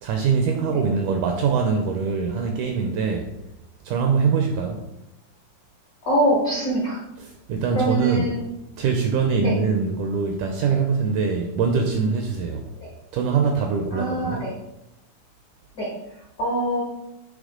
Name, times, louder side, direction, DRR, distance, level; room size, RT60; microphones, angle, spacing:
voice 1, 0.0-3.3 3.9-4.8 7.2-8.3 8.8-12.7 13.1-14.5, right 5 dB, 80° right, 3 dB, 1.8 m, -23 dB
voice 2, 6.1-7.0 7.7-8.4 9.4-9.5 13.9-14.5 15.8-15.9 16.4-16.8, right 1 dB, 60° left, -6 dB, 1.1 m, -23 dB
8.7 x 3.5 x 3.7 m, 0.91 s
omnidirectional pair, 4.1 m